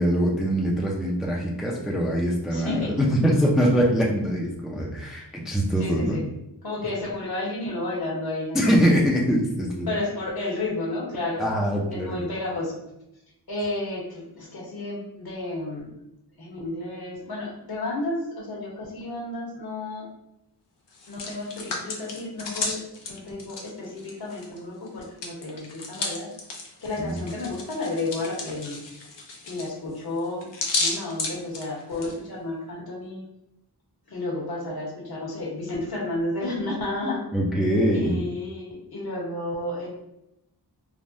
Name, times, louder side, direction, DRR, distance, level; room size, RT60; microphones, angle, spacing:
voice 1, 0.0-6.2 8.5-9.9 11.4-12.1 27.0-27.2 37.3-38.2, equal, ahead, -2 dB, 0.4 m, -23 dB
voice 2, 2.5-2.9 5.8-6.2 6.6-9.0 9.9-11.5 11.9-12.8 13.5-15.9 16.4-20.1 21.1-22.8 23.1-26.3 26.8-28.8 29.4-30.5 30.8-33.2 34.1-37.2 37.9-39.9, left 2 dB, 60° left, -3 dB, 1.0 m, -31 dB
Hands, 20.9-24.6 24.9-32.1, left 3 dB, 85° left, 0.7 m, -33 dB
3.3 x 2.1 x 2.5 m, 0.86 s
wide cardioid pair, 105°, 42 cm